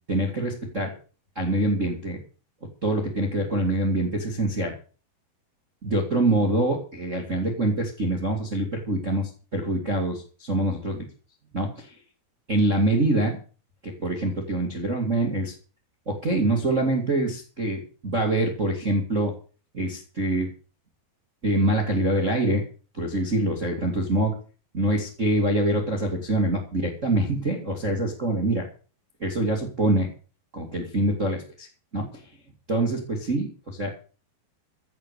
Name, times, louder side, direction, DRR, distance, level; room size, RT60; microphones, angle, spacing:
voice 1, 0.1-0.9 1.4-2.2 2.8-4.7 5.8-11.0 11.5-11.9 12.5-13.4 13.8-15.5 16.1-19.3 19.7-20.5 21.4-22.6 22.9-24.4 24.7-28.6 29.2-30.1 30.5-31.7 31.9-32.0 32.7-33.9, right 1 dB, 25° right, 3 dB, 1.8 m, -25 dB
15.5 x 6.9 x 8.2 m, 0.39 s
omnidirectional pair, 4.5 m